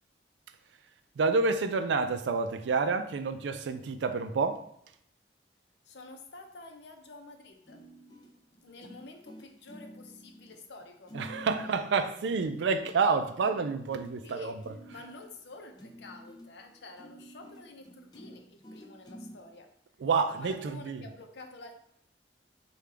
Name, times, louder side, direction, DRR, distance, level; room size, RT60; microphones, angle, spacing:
voice 1, 1.2-4.6 11.1-14.5 20.0-21.0, right 4 dB, 80° right, 0.4 m, -29 dB
voice 2, 5.9-7.8 8.6-11.7 14.2-14.5 14.9-19.7 20.3-21.7, left 2 dB, 70° left, 0.6 m, -49 dB
sound 1, 7.7-19.4 20.1-20.2 20.7-20.9, equal, 25° left, 0.5 m, -50 dB
4.9 x 2.3 x 3.3 m
head